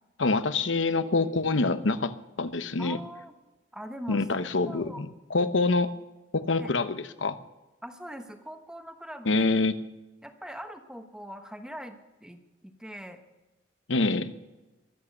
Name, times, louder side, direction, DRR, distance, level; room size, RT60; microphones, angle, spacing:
voice 1, 0.2-3.0 4.1-5.9 6.3-7.4 9.3-9.7 13.9-14.3, left 3 dB, 85° left, 11 dB, 0.9 m, -26 dB
voice 2, 2.8-3.3 3.7-4.3 4.6-5.0 6.6-6.7 7.8-9.4 10.2-13.2, equal, 5° right, 6 dB, 1.2 m, -42 dB
23.0 x 8.6 x 6.6 m, 1.1 s
head